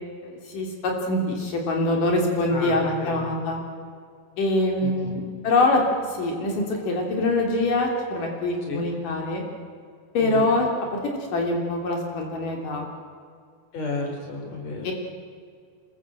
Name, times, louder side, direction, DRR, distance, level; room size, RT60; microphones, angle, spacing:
voice 1, 0.2-3.6 4.4-5.8 6.1-9.4 10.1-10.7 11.3-12.9 14.8-14.9, left 2 dB, 80° left, 1 dB, 4.9 m, -24 dB
voice 2, 2.5-3.2 4.8-5.1 8.7-8.9 10.2-10.5 13.7-14.9, left 3 dB, 55° left, 2 dB, 5.4 m, -32 dB
26.0 x 22.0 x 7.8 m, 2.2 s
omnidirectional pair, 3.7 m